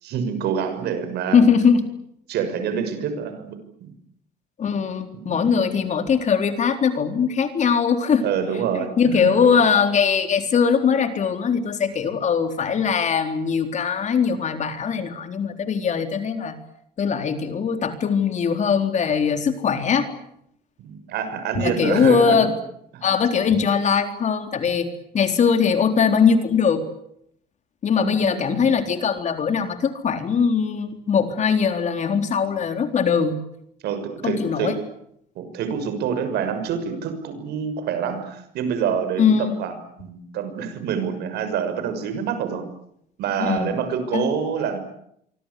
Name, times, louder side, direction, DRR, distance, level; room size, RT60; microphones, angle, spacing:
voice 1, 0.0-1.4 2.3-3.9 5.1-5.8 8.2-9.5 20.8-22.4 22.9-23.0 27.9-28.6 33.8-34.8 35.3-42.7 43.2-44.8, right 7 dB, 75° right, 10 dB, 6.3 m, -27 dB
voice 2, 1.3-1.8 4.6-8.3 8.7-16.6 17.0-20.1 21.6-22.5 23.0-26.8 27.8-33.4 34.2-34.8 39.2-39.6 43.4-43.7 44.1-44.3, left 6 dB, 45° left, 7 dB, 4.0 m, -21 dB
27.0 x 24.5 x 8.5 m, 0.74 s
cardioid pair, 110°, 17 cm